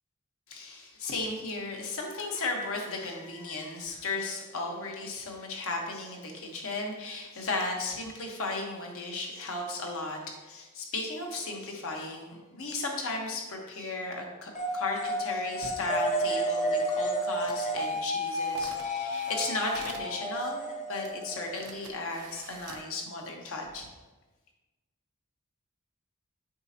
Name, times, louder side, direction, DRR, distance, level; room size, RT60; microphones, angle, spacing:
voice 1, 0.5-20.6 20.9-23.9, left 3 dB, 65° left, 1 dB, 1.2 m, -35 dB
sound 1, 14.6-22.0, equal, 35° left, 0.7 m, -31 dB
sound 2, 17.3-20.1 21.0-21.1 21.5-22.9 23.5-23.7, right 5 dB, 85° right, 0.7 m, -48 dB
7.8 x 5.1 x 2.8 m, 1.2 s
head